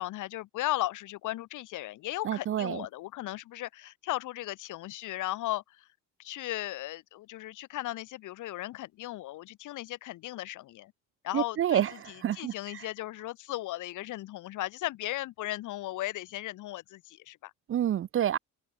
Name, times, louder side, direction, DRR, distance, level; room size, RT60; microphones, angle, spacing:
voice 1, 0.0-5.9 6.2-10.9 11.2-17.5, left 16 dB, 90° left, 2.6 m, -36 dB
voice 2, 2.2-2.8 11.3-12.5 17.7-18.4, right 10 dB, 45° right, 0.5 m, -28 dB
cardioid pair, 90°, 30 cm